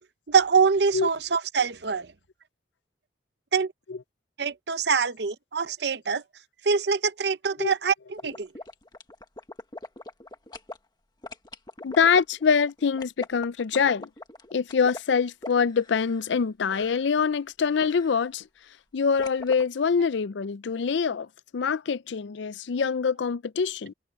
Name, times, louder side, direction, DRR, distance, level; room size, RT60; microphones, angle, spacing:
voice 1, 0.3-2.1 3.5-3.7 4.4-6.2 6.6-8.5, right 5 dB, 60° right, 0.8 m, -24 dB
sound 1, 8.2-10.8 11.2-16.4 16.7-17.1 17.7-18.3 19.2-19.6, left 2 dB, 20° left, 1.5 m, -41 dB
voice 2, 11.8-14.1 14.5-18.5 18.9-21.3 21.5-23.9, left 6 dB, 70° left, 0.5 m, -24 dB
head